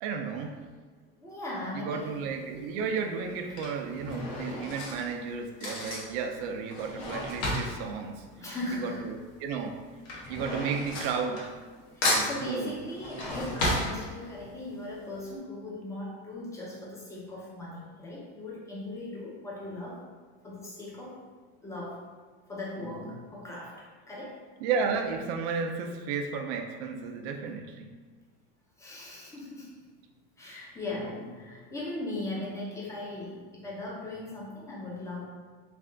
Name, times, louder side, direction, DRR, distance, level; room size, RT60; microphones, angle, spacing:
voice 1, 0.0-0.6 1.7-8.2 8.8-9.8 10.3-11.5 12.1-12.7 24.6-27.9, right 5 dB, 70° right, 5 dB, 0.5 m, -33 dB
voice 2, 1.2-2.2 8.4-9.0 11.9-20.0 20.4-21.2 21.6-22.1 22.5-24.4 28.8-29.8 30.4-35.2, left 2 dB, 10° left, -4 dB, 0.7 m, -38 dB
Drawer open or close / Cutlery silverware, 2.0-2.4 3.2-9.1 9.4-11.8 12.0-14.5 15.0-15.1 15.3-15.4, left 1 dB, 75° left, 1.1 m, -33 dB
3.3 x 2.4 x 3.8 m, 1.5 s
cardioid pair, 150°, 30 cm